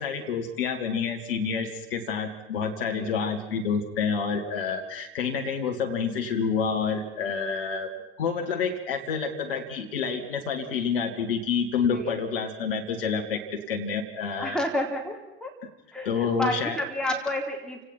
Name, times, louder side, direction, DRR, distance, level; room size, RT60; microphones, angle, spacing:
voice 1, 0.0-7.9 8.2-14.6 16.1-16.8, left 5 dB, 70° left, 3 dB, 2.2 m, -28 dB
voice 2, 14.4-15.5 15.9-17.8, left 1 dB, ahead, 0 dB, 4.1 m, -30 dB
29.0 x 18.5 x 6.0 m, 0.97 s
figure-of-eight pair, 65°, 30 cm